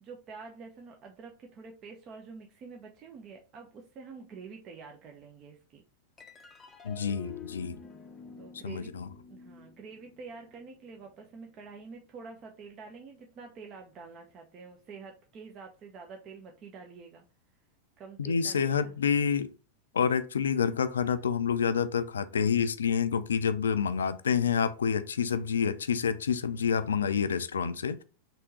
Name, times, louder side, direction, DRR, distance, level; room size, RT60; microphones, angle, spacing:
voice 1, 0.0-5.8 8.4-8.9 9.3-17.2 18.0-19.0, right 5 dB, 35° right, 0.6 m, -47 dB
sound 1, 6.2-12.9, left 6 dB, 20° left, 0.6 m, -50 dB
voice 2, 6.8-7.8 8.6-9.1 18.2-19.5 19.9-28.0, left 7 dB, 70° left, 0.3 m, -28 dB
3.5 x 2.7 x 4.1 m
figure-of-eight pair, 90°, 0 cm